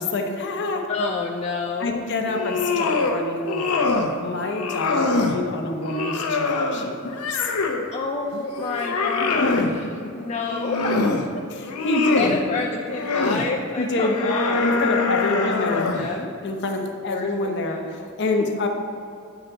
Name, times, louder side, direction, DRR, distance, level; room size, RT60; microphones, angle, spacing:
voice 1, 0.0-0.9 1.8-7.5 9.4-9.7 10.0-10.1 11.5-12.4 13.8-14.2 14.6-15.9 16.4-18.7, left 2 dB, 55° left, 3 dB, 0.8 m, -27 dB
voice 2, 0.9-2.1 7.9-9.9 10.1-11.0 12.2-14.8 15.3-16.3 17.0-17.9 18.4-18.5, left 3 dB, 30° left, -1 dB, 0.4 m, -29 dB
sound 1, 2.3-3.2 3.5-4.1 4.5-5.4 5.8-7.9 8.3-9.7 10.4-11.3 11.6-12.4 12.9-13.5 14.0-16.1, left 3 dB, 90° left, 0.6 m, -24 dB
9.1 x 3.9 x 4.5 m, 2.6 s
head